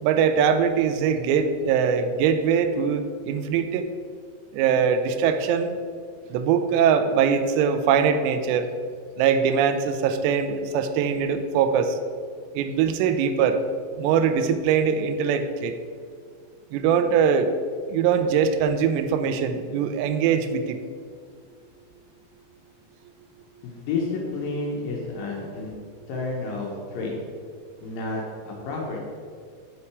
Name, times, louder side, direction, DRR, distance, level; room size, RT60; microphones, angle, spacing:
voice 1, 0.0-3.8 4.5-5.7 6.3-8.7 9.2-12.0 12.6-13.6 14.0-15.7 16.7-17.5 17.9-20.8, right 7 dB, 85° right, 9 dB, 2.8 m, -22 dB
voice 2, 23.6-25.7 26.1-27.2 27.8-29.0, left 3 dB, 70° left, -1 dB, 2.3 m, -30 dB
8.5 x 5.9 x 4.7 m, 2.1 s
omnidirectional pair, 4.9 m